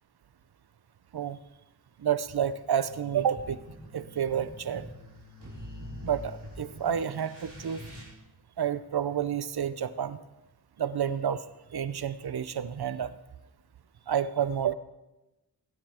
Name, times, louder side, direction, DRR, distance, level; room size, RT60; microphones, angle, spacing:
voice 1, 2.0-3.6 3.9-4.9 6.0-7.8 8.6-10.2 10.8-11.4 11.7-13.1 14.1-14.7, right 8 dB, 75° right, 14 dB, 0.8 m, -29 dB
sound 1, 2.3-8.0, left 1 dB, 60° right, 5.5 m, -45 dB
20.5 x 10.0 x 4.4 m, 0.98 s
wide cardioid pair, 75°, 38 cm